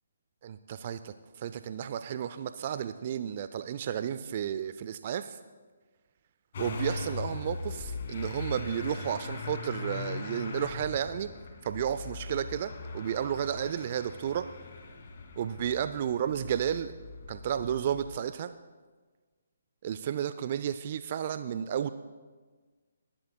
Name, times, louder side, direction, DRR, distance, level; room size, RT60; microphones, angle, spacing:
voice 1, 0.4-5.4 6.6-11.3 11.6-14.5 15.4-16.9 17.3-18.5 19.8-21.9, right 9 dB, 40° right, 12 dB, 0.4 m, -32 dB
Motor vehicle (road) / Engine starting, 6.5-18.2, left 4 dB, 50° left, 2.0 m, -40 dB
28.0 x 11.5 x 2.2 m, 1.4 s
figure-of-eight pair, 140°, 0 cm